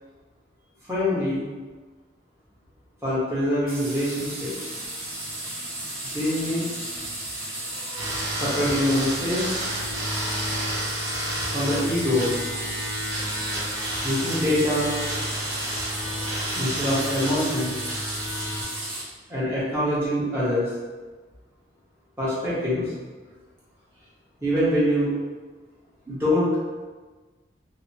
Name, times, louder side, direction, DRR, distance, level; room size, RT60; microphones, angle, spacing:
voice 1, 0.9-1.4 3.0-4.7 5.3-5.4 6.1-6.7 7.6-9.5 11.5-12.3 14.0-14.9 16.0-17.7 19.3-20.7 22.2-22.9 24.4-25.1 26.1-26.5, left 1 dB, 15° right, -10 dB, 0.9 m, -25 dB
sound 1, 3.7-19.0, right 1 dB, 50° right, 0.8 m, -34 dB
sound 2, 7.9-18.6, right 1 dB, 85° right, 0.7 m, -31 dB
2.7 x 2.1 x 2.6 m, 1.3 s
head